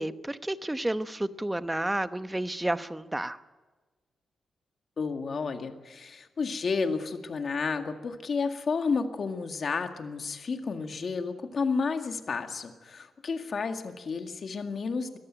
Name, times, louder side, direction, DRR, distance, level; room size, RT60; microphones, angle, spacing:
voice 1, 0.0-3.4, right 1 dB, 10° right, 11 dB, 0.9 m, -31 dB
voice 2, 5.0-15.2, left 4 dB, 50° left, 6 dB, 2.0 m, -31 dB
22.5 x 14.0 x 9.0 m, 1.3 s
cardioid pair, 95°, 0 cm